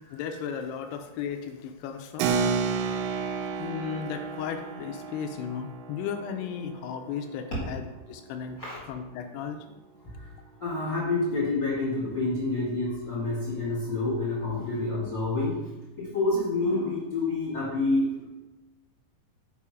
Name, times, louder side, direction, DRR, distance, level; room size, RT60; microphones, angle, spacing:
voice 1, 0.1-2.3 2.9-3.1 3.6-7.8 8.1-8.6 8.9-9.6, left 7 dB, 80° left, 6 dB, 2.5 m, -35 dB
Keyboard (musical), 2.2-8.2, right 5 dB, 85° right, 2.8 m, -32 dB
voice 2, 10.6-15.6 16.0-18.2, left 2 dB, 50° left, -7 dB, 1.3 m, -28 dB
6.9 x 5.2 x 4.8 m, 1.0 s
omnidirectional pair, 5.2 m